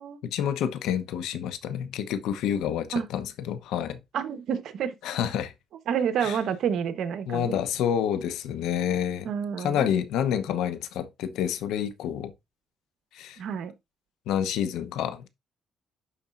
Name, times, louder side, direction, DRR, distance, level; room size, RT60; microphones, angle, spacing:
voice 1, 0.2-4.0 5.0-5.5 6.2-6.4 7.3-9.3 9.6-12.3 13.1-13.4 14.3-15.3, left 9 dB, 90° left, 0.9 m, -28 dB
voice 2, 4.1-5.0 5.9-7.6 9.2-9.9 13.4-13.7, right 7 dB, 75° right, 1.1 m, -29 dB
11.0 x 4.1 x 2.5 m
cardioid pair, 90°, 0 cm